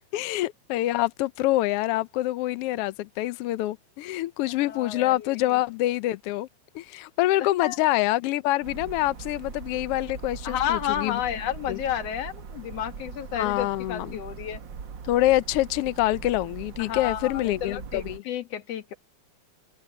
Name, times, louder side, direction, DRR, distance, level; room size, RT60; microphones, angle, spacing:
voice 1, 0.1-6.5 6.7-11.2 11.7-11.8 13.3-14.2 15.0-18.2, left 16 dB, 85° left, 1.3 m, -26 dB
voice 2, 4.7-5.6 7.6-7.8 10.4-14.6 16.8-18.9, left 10 dB, 60° left, 2.3 m, -31 dB
sound 1, 8.6-18.2, right 6 dB, 50° right, 1.6 m, -41 dB
omnidirectional pair, 3.4 m